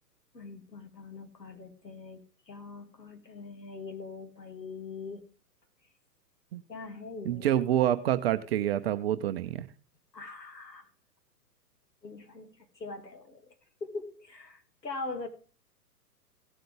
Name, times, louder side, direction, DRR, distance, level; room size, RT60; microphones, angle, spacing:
voice 1, 0.3-5.2 6.7-7.5 10.1-10.9 12.0-13.5 13.8-15.3, left 3 dB, 90° left, 6 dB, 2.5 m, -42 dB
voice 2, 7.2-9.7, right 12 dB, 40° right, 10 dB, 0.7 m, -27 dB
17.0 x 7.7 x 3.4 m, 0.36 s
figure-of-eight pair, 115°, 49 cm